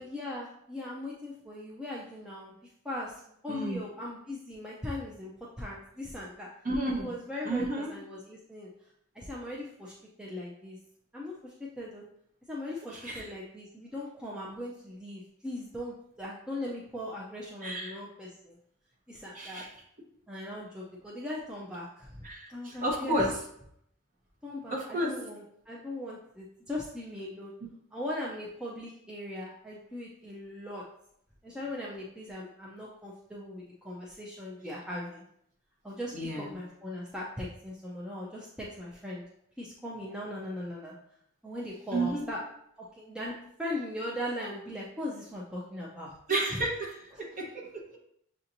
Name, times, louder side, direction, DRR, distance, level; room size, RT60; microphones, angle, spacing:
voice 1, 0.0-5.3 5.6-6.5 6.9-8.9 9.1-10.8 11.1-12.0 12.5-18.6 19.1-19.6 20.3-23.3 24.4-27.5 27.9-30.8 31.4-35.2 35.8-39.2 39.6-40.9 41.4-42.4 42.8-46.1 46.5-46.6 47.1-47.2, left 1 dB, 5° right, -5 dB, 0.4 m, -39 dB
voice 2, 3.5-3.8 6.6-7.1 7.4-7.9 12.9-13.3 17.6-18.0 19.3-19.7 22.2-23.3 24.7-25.1 36.1-36.5 41.9-42.3 46.3-48.0, right 1 dB, 35° right, -2 dB, 0.9 m, -32 dB
6.7 x 2.8 x 2.5 m, 0.71 s
head